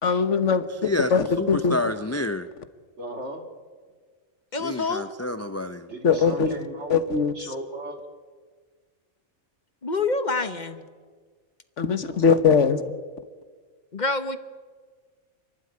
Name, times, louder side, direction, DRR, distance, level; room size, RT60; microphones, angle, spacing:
voice 1, 0.0-1.8 6.0-6.5 6.9-7.5 11.8-12.8, left 5 dB, 80° left, 11 dB, 1.6 m, -21 dB
voice 2, 0.8-2.5 4.6-5.9, left 2 dB, 15° left, 11 dB, 0.6 m, -29 dB
voice 3, 3.0-3.5 5.9-6.9 7.3-8.0 12.0-12.2, right 1 dB, 70° right, 4 dB, 2.9 m, -36 dB
voice 4, 4.5-5.1 9.8-10.8 13.9-14.4, left 3 dB, 40° left, 11 dB, 1.2 m, -26 dB
29.0 x 12.0 x 9.9 m, 1.5 s
omnidirectional pair, 1.2 m